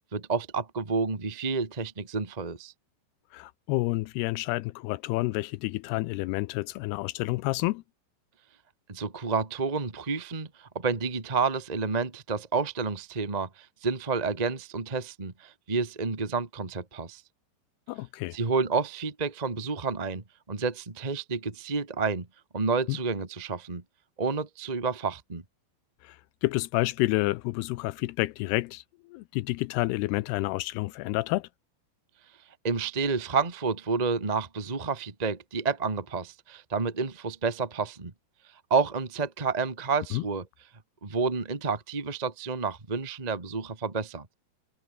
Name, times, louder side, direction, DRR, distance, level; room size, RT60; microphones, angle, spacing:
voice 1, 0.1-2.7 8.9-17.2 18.3-22.3 22.5-23.8 24.2-25.4 32.6-38.1 38.7-40.4 41.0-44.2, right 4 dB, 30° right, 0.7 m, -30 dB
voice 2, 3.3-7.8 17.9-18.4 22.9-23.0 26.0-28.8 29.1-31.5 40.1-40.2, left 20 dB, 80° left, 2.4 m, -29 dB
omnidirectional pair, 5.2 m